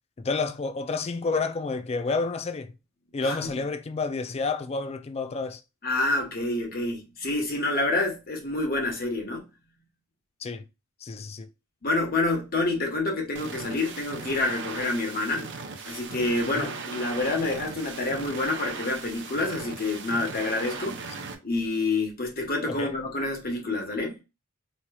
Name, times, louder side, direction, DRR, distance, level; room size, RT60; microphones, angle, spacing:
voice 1, 0.2-2.7 3.1-5.6 10.4-10.6 11.0-11.5 16.5-16.7 22.8-22.9, left 4 dB, 30° left, 0.4 m, -30 dB
voice 2, 3.2-3.6 5.8-9.5 11.8-15.5 15.8-21.0 21.4-24.2, left 2 dB, 45° left, 1.3 m, -28 dB
sound 1, 13.3-21.3, right 4 dB, 55° right, 0.7 m, -38 dB
4.2 x 3.1 x 2.3 m
head